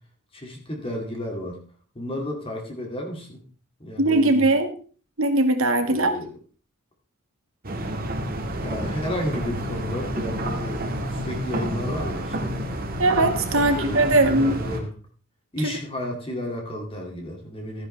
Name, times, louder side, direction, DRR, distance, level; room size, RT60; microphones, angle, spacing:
voice 1, 0.3-1.6 2.0-3.4 3.8-4.5 5.8-6.3 8.5-12.5 13.5-14.0 14.3-14.9 15.5-17.9, left 1 dB, 25° left, 2 dB, 2.2 m, -32 dB
voice 2, 4.0-4.7 5.2-6.1 13.0-14.6 15.6-15.8, right 2 dB, 65° right, 7 dB, 1.5 m, -20 dB
sound 1, 7.6-14.8, right 1 dB, 40° right, 1.8 m, -29 dB
14.0 x 10.0 x 3.2 m, 0.40 s
head